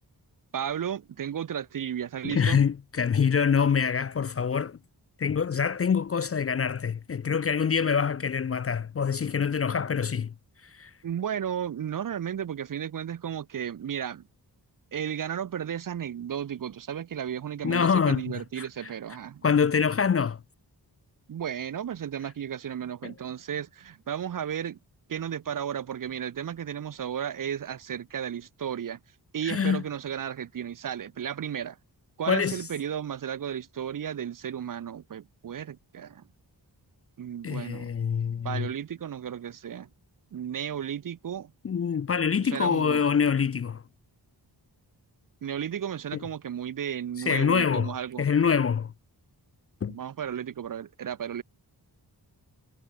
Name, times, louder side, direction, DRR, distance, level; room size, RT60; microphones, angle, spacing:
voice 1, 0.5-2.6 11.0-14.3 14.9-19.4 21.3-24.8 25.1-29.0 29.3-31.8 32.2-36.2 37.2-37.9 38.4-39.9 40.3-41.5 42.4-43.0 45.4-48.3 49.9-51.4, right 9 dB, 50° right, 0.6 m, -34 dB
voice 2, 2.2-4.8 5.2-10.3 10.7-10.9 17.6-18.9 19.4-20.4 23.0-23.1 29.4-29.8 32.3-32.6 37.4-38.7 41.6-43.8 46.1-46.2 47.3-48.9 49.8-49.9, left 6 dB, 35° left, 0.4 m, -25 dB
wide cardioid pair, 135°, 41 cm